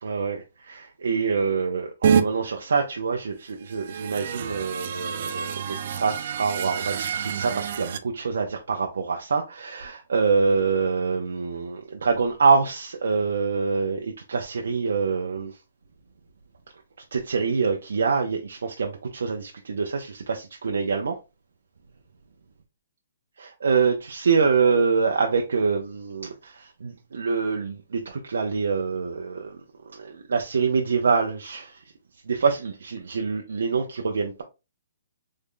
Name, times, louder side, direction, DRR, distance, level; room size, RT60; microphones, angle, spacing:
voice 1, 0.0-15.6 17.1-21.2 23.4-29.6 29.9-31.8 32.3-34.4, right 5 dB, 90° right, 0.6 m, -25 dB
sound 1, 2.0-2.2 3.6-8.0, right 7 dB, 45° right, 0.3 m, -27 dB
3.6 x 2.1 x 3.6 m
hypercardioid pair, 170°, 0 cm